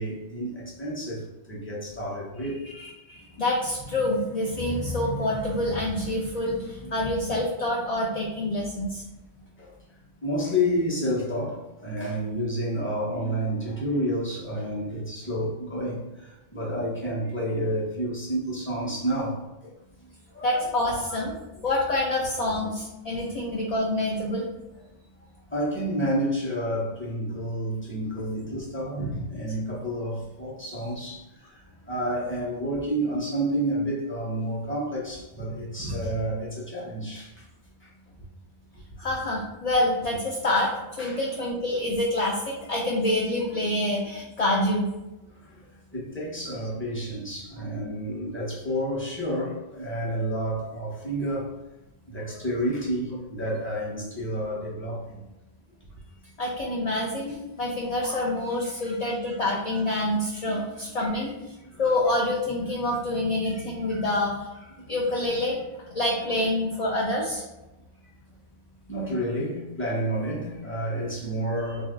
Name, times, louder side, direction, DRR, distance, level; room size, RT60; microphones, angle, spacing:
voice 1, 0.0-2.6 6.8-7.0 9.6-9.7 10.2-19.7 20.3-21.2 25.5-37.5 37.8-37.9 41.0-41.2 45.3-51.5 52.1-55.2 58.6-59.0 59.7-59.8 60.4-60.6 61.0-61.1 61.7-61.8 63.4-63.6 63.9-64.1 68.9-71.8, equal, 10° left, -6 dB, 0.9 m, -30 dB
voice 2, 2.8-9.0 20.4-21.3 21.6-24.5 39.0-44.9 56.4-64.5 64.9-65.6 65.9-67.4, left 1 dB, 45° left, -3 dB, 0.5 m, -27 dB
3.2 x 2.6 x 3.7 m, 0.99 s
omnidirectional pair, 1.1 m